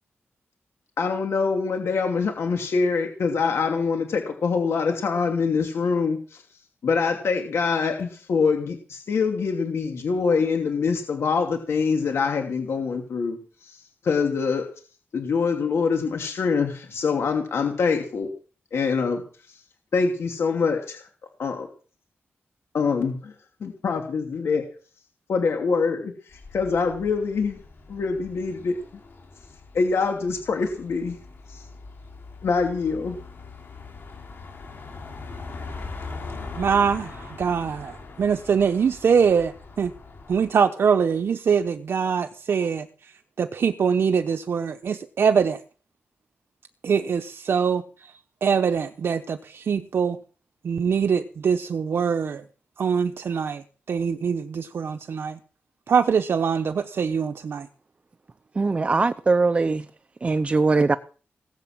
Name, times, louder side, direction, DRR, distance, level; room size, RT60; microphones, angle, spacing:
voice 1, 1.0-6.4 6.8-14.6 15.1-18.3 18.7-19.2 19.9-21.0 21.4-21.7 22.7-23.3 23.6-24.6 25.3-27.6 27.9-28.8 29.7-31.2 31.5-31.6 32.4-33.1, left 5 dB, 80° left, 3 dB, 2.8 m, -24 dB
sound 1, 26.3-40.5, left 3 dB, 60° left, 6.2 m, -41 dB
voice 2, 36.6-39.9 40.3-42.9 43.4-45.6 46.8-47.8 48.4-50.2 50.6-52.4 52.8-53.6 53.9-55.4 55.9-57.7, right 6 dB, 65° right, 6 dB, 1.0 m, -23 dB
voice 3, 58.6-59.8 60.2-61.0, right 3 dB, 30° right, 11 dB, 0.7 m, -21 dB
19.5 x 8.2 x 7.6 m, 0.40 s
wide cardioid pair, 175°, 4 cm